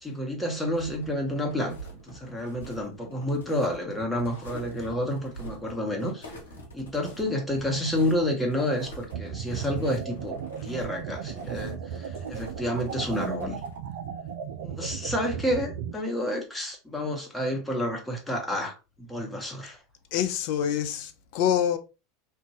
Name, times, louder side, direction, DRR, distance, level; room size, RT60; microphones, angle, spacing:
voice 1, 0.0-6.3 6.7-13.6 14.6-19.8, left 1 dB, 10° left, 0.9 m, -30 dB
sound 1, 0.6-13.8, right 1 dB, 75° left, 0.9 m, -45 dB
sound 2, 9.1-15.9, right 7 dB, 65° right, 0.3 m, -36 dB
voice 2, 20.1-21.8, left 9 dB, 55° left, 0.4 m, -26 dB
2.6 x 2.2 x 2.8 m
figure-of-eight pair, 80°, 0 cm